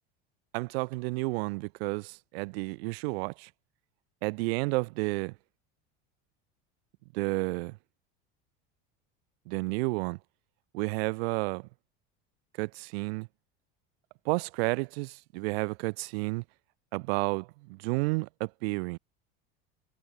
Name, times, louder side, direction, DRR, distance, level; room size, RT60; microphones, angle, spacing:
voice 1, 0.5-3.5 4.2-5.3 7.1-7.8 9.5-10.2 10.7-11.7 12.6-13.3 14.2-16.4 16.9-19.0, right 26 dB, 80° right, 2.4 m, -31 dB
supercardioid pair, 120°, 30 cm